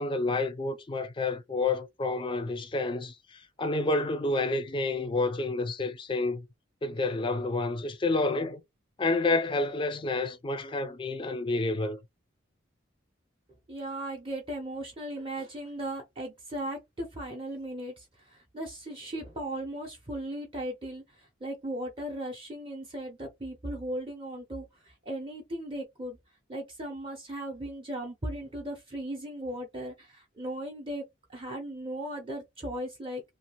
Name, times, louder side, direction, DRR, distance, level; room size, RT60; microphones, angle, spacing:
voice 1, 0.0-6.4 6.8-8.6 9.0-12.0, left 3 dB, 25° left, 0.4 m, -29 dB
voice 2, 13.7-26.2 26.5-31.0 31.3-33.2, right 1 dB, 25° right, 0.6 m, -37 dB
2.7 x 2.3 x 2.9 m
head